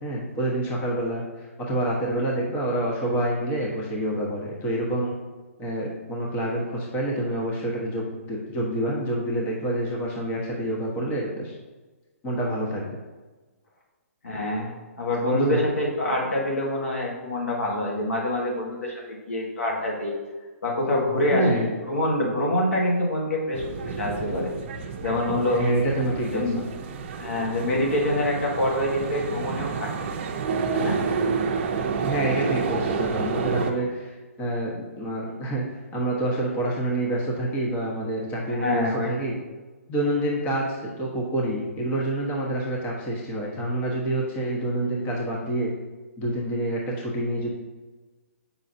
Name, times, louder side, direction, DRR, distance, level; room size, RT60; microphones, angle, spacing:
voice 1, 0.0-5.1 5.6-11.5 12.2-13.0 15.2-15.7 21.3-21.7 25.5-26.6 32.0-39.4 39.9-45.7 46.2-47.5, right 1 dB, 20° left, -2 dB, 1.1 m, -27 dB
voice 2, 14.2-20.1 20.6-24.5 25.0-25.7 26.1-26.6 27.2-30.1 30.7-31.0 38.5-39.3, left 1 dB, 75° left, -2 dB, 1.8 m, -26 dB
sound 1, 23.5-33.7, right 5 dB, 45° right, 0.6 m, -29 dB
7.4 x 5.6 x 2.7 m, 1.3 s
hypercardioid pair, 145°, 8 cm